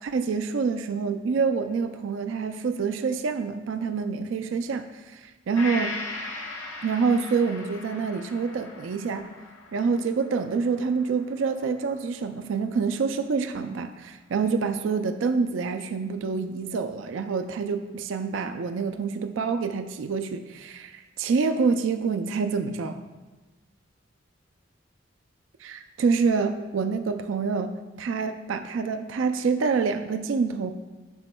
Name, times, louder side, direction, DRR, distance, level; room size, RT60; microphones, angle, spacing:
voice 1, 0.0-6.0 6.8-9.2 9.7-23.0 25.6-30.7, right 5 dB, 75° right, 8 dB, 0.4 m, -27 dB
Gong, 5.6-13.2 13.6-13.7, left 2 dB, 90° left, 1.1 m, -40 dB
8.1 x 6.1 x 2.2 m, 1.2 s
head